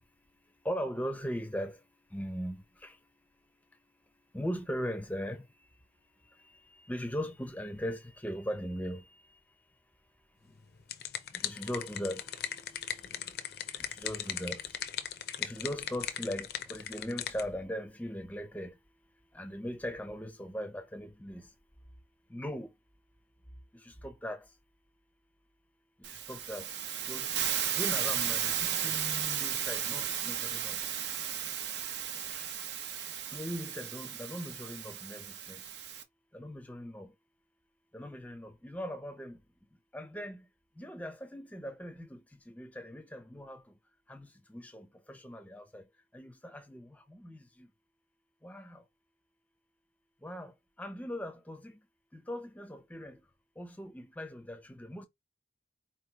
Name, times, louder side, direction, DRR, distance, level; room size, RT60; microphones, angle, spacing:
voice 1, 0.6-1.8 2.1-2.9 4.3-5.4 6.9-9.0 11.4-12.3 13.9-14.6 15.4-18.7 19.3-21.4 22.3-22.7 24.0-24.4 26.3-26.7 27.1-27.3 27.7-28.6 28.8-30.8 32.3-32.5 33.3-35.6 36.3-37.1 37.9-39.4 39.9-40.4 40.8-42.2 42.5-43.6 44.1-45.8 46.1-47.7 48.4-48.8 50.2-50.5 50.8-51.7 52.1-53.2 53.6-55.1, equal, 10° left, 0.6 m, -39 dB
sound 1, 10.6-17.4, left 9 dB, 60° left, 0.5 m, -38 dB
Hiss, 26.0-36.0, right 9 dB, 80° right, 0.8 m, -34 dB
4.5 x 3.0 x 3.3 m
head